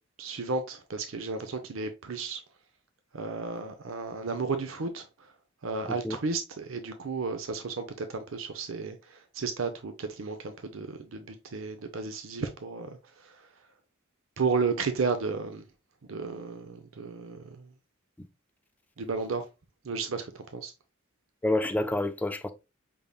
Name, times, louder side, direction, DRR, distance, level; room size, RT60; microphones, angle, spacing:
voice 1, 0.2-2.4 3.1-5.1 5.6-13.0 13.2-13.4 14.4-15.6 16.1-17.7 19.0-19.5 19.8-20.7, right 4 dB, 85° right, 0.7 m, -33 dB
voice 2, 21.4-22.5, left 1 dB, 10° left, 0.4 m, -28 dB
5.3 x 3.4 x 2.4 m
head